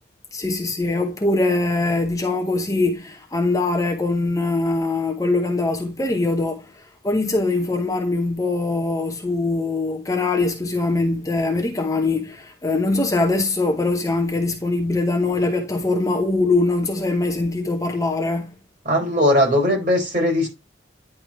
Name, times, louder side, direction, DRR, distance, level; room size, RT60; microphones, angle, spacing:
voice 1, 0.3-18.6, left 2 dB, 20° left, 0.7 m, -22 dB
voice 2, 18.9-20.5, left 1 dB, 45° right, 4.2 m, -19 dB
10.0 x 3.4 x 4.5 m
head